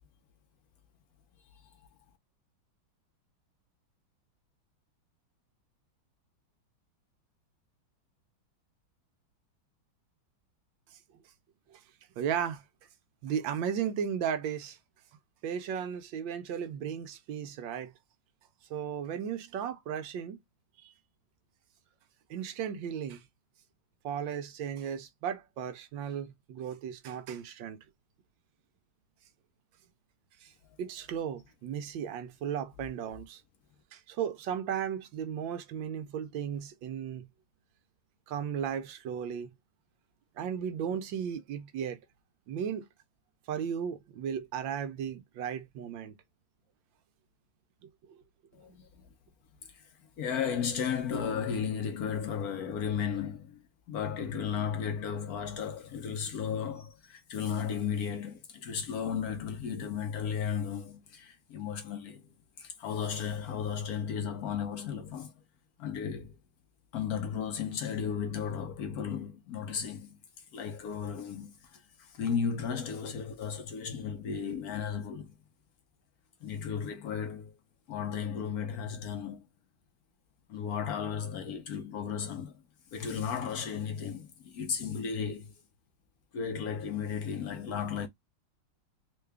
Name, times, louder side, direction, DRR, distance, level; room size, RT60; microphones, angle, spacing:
voice 1, 12.2-12.6 13.2-14.8 15.4-17.9 18.7-20.4 20.8-20.9 22.3-23.2 24.0-27.8 30.4-30.5 30.8-33.4 33.9-37.3 38.3-39.5 40.4-42.0 42.5-42.9 43.5-46.2 48.1-48.2, right 8 dB, 75° right, 1.3 m, -35 dB
voice 2, 48.5-49.0 49.7-49.9 50.2-62.3 62.6-65.3 65.8-66.4 66.9-70.2 70.5-75.4 76.4-77.6 77.9-79.5 80.5-82.6 82.9-85.5 86.3-88.1, left 7 dB, 65° left, 0.9 m, -34 dB
3.7 x 2.3 x 3.3 m
omnidirectional pair, 2.2 m